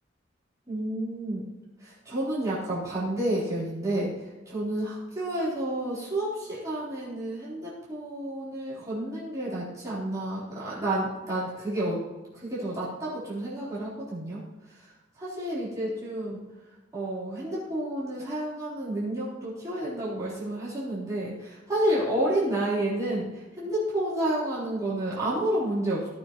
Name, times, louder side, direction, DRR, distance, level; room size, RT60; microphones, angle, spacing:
voice 1, 0.7-1.5 1.8-12.0 12.3-14.4 14.7-16.4 16.9-26.1, right 1 dB, 20° right, -10 dB, 4.0 m, -30 dB
17.5 x 7.1 x 3.1 m, 1.1 s
head